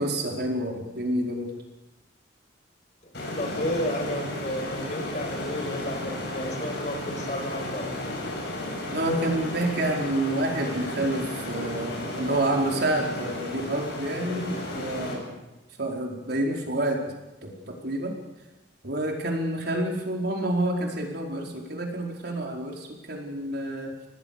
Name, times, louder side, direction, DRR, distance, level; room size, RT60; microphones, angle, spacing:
voice 1, 0.0-1.5 8.9-15.4 15.8-17.0 17.4-17.6 17.8-18.1 18.8-23.9, right 1 dB, 60° right, 0 dB, 4.8 m, -28 dB
sound 1, 3.1-15.1, left 1 dB, 60° left, 7.8 m, -34 dB
voice 2, 3.4-7.9, left 1 dB, 40° left, 3 dB, 5.9 m, -32 dB
26.5 x 19.0 x 6.8 m, 1.0 s
head